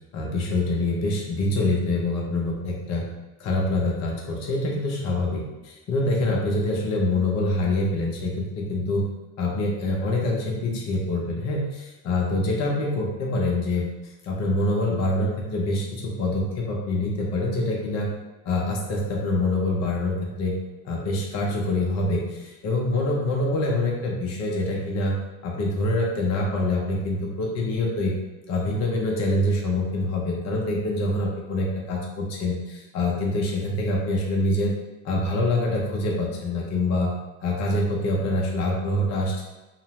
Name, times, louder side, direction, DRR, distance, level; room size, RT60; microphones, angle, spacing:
voice 1, 0.1-3.1 3.4-9.1 9.4-13.9 14.2-18.1 18.4-20.6 20.8-28.1 28.5-34.7 35.0-37.1 37.4-39.4, left 2 dB, 35° left, -2 dB, 0.6 m, -25 dB
2.6 x 2.0 x 3.0 m, 1.1 s
hypercardioid pair, 65°, 44 cm